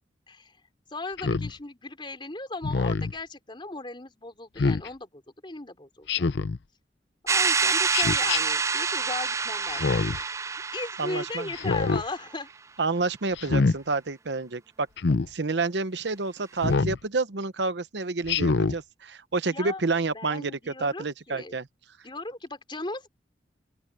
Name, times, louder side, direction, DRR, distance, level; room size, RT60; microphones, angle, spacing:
voice 1, 0.9-6.3 7.3-10.2 10.5-12.5 19.5-19.8 20.1-21.6 22.0-23.1, left 2 dB, 30° left, 3.8 m, -37 dB
Speech synthesizer, 1.2-1.5 2.6-3.1 4.6-4.9 6.1-6.6 7.9-8.4 9.7-10.2 11.5-12.0 13.4-13.8 15.0-15.3 16.6-17.0 18.3-18.8, left 4 dB, 75° left, 0.6 m, -25 dB
sound 1, 7.3-12.1, right 5 dB, 15° right, 0.3 m, -27 dB
voice 2, 11.0-11.5 12.8-14.9 15.3-21.7, right 3 dB, 75° right, 0.9 m, -29 dB
open air
head